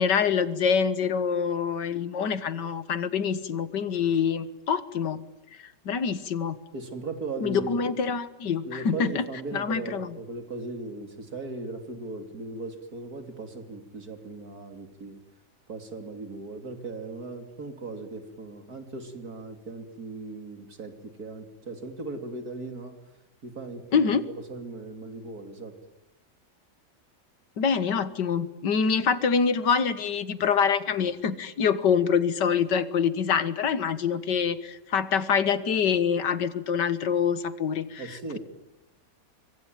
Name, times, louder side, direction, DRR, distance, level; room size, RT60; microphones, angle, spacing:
voice 1, 0.0-5.2 5.9-6.6 7.4-9.2 9.5-10.2 23.9-24.2 27.6-38.4, left 6 dB, 85° left, 13 dB, 2.0 m, -25 dB
voice 2, 6.7-7.8 8.7-15.2 15.7-23.0 23.4-24.1 24.5-25.7 38.0-38.4, right 3 dB, 60° right, 6 dB, 3.3 m, -38 dB
25.0 x 24.5 x 9.2 m, 0.98 s
omnidirectional pair, 1.8 m